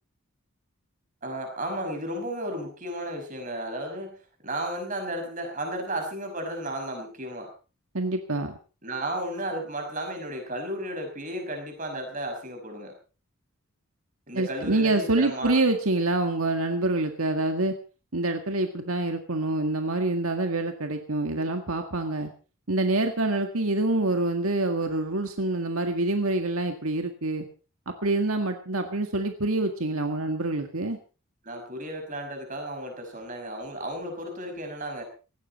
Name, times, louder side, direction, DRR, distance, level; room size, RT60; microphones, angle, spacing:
voice 1, 1.2-7.5 8.8-12.9 14.3-15.6 31.4-35.0, right 1 dB, 35° right, 4 dB, 5.6 m, -34 dB
voice 2, 7.9-8.6 14.3-17.7 18.1-22.3 22.7-27.5 27.9-31.0, right 2 dB, 75° right, 5 dB, 1.8 m, -26 dB
18.0 x 15.5 x 4.2 m, 0.36 s
head